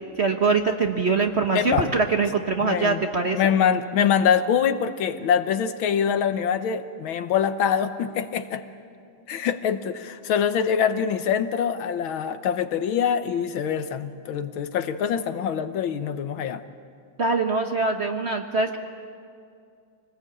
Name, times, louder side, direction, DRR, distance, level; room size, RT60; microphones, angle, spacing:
voice 1, 0.2-3.5 17.2-18.8, right 4 dB, 40° right, 5 dB, 1.0 m, -23 dB
voice 2, 1.5-1.9 2.6-3.0 3.3-8.6 9.3-16.6, left 8 dB, 80° left, 10 dB, 1.8 m, -24 dB
25.5 x 19.5 x 8.6 m, 2.4 s
omnidirectional pair, 2.2 m